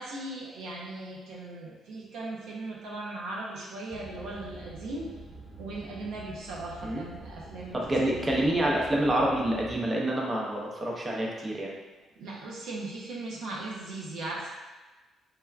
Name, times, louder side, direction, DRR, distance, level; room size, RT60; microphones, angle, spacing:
voice 1, 0.0-5.1 5.6-8.2 12.2-14.5, right 2 dB, 90° right, -3 dB, 0.5 m, -38 dB
sound 1, 3.9-9.9, right 2 dB, 15° left, 0.9 m, -46 dB
voice 2, 7.7-11.7, right 1 dB, 25° right, -2 dB, 0.5 m, -27 dB
3.3 x 2.2 x 2.3 m, 1.2 s
cardioid pair, 90°, 0 cm